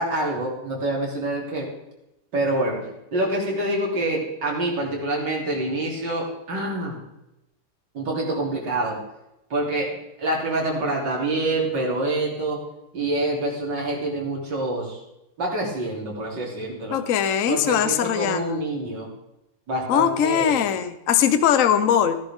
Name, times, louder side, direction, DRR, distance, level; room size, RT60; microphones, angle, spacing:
voice 1, 0.0-1.7 2.3-2.8 3.1-7.0 7.9-9.0 9.5-12.6 12.9-15.0 15.4-17.0 17.5-19.1 19.7-20.6, right 2 dB, 55° right, -2 dB, 3.8 m, -26 dB
voice 2, 16.9-18.6 19.9-22.1, left 9 dB, 55° left, 10 dB, 0.9 m, -21 dB
16.0 x 10.5 x 3.7 m, 0.88 s
omnidirectional pair, 2.3 m